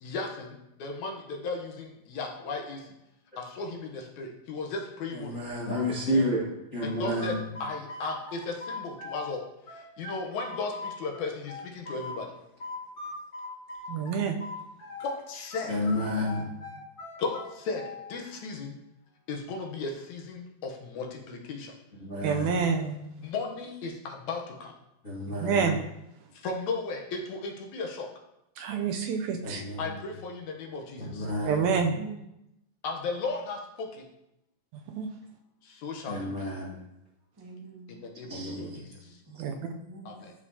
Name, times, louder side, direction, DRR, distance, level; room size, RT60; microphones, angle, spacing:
voice 1, 0.0-2.9 3.4-5.4 6.8-7.3 7.6-12.3 13.8-14.0 15.0-15.8 17.2-17.8 18.1-18.8 19.3-21.7 23.2-24.7 26.3-28.1 29.8-31.3 32.8-34.1 35.6-36.5 37.9-38.7 39.1-39.2 40.1-40.3, left 4 dB, 75° left, 1 dB, 2.2 m, -36 dB
voice 2, 5.1-6.5 6.7-7.5 15.7-16.5 22.0-22.6 25.0-25.7 29.4-30.0 31.0-31.7 36.1-36.8 38.3-39.1, left 1 dB, 35° left, -9 dB, 1.6 m, -31 dB
sound 1, 6.8-9.3 9.7-12.2 12.6-15.2 15.5-18.1, left 3 dB, 50° left, 1.5 m, -41 dB
voice 3, 13.9-14.3 22.2-23.0 25.4-25.8 28.6-29.6 31.5-32.0 34.7-35.1 39.4-39.6, right 6 dB, 80° right, 3 dB, 1.8 m, -27 dB
voice 4, 16.4-16.7 31.0-31.4 31.8-32.2 37.4-37.9 38.2-38.7 39.3-40.2, right 3 dB, 20° right, -4 dB, 0.6 m, -46 dB
12.0 x 4.9 x 2.8 m, 0.84 s
omnidirectional pair, 3.5 m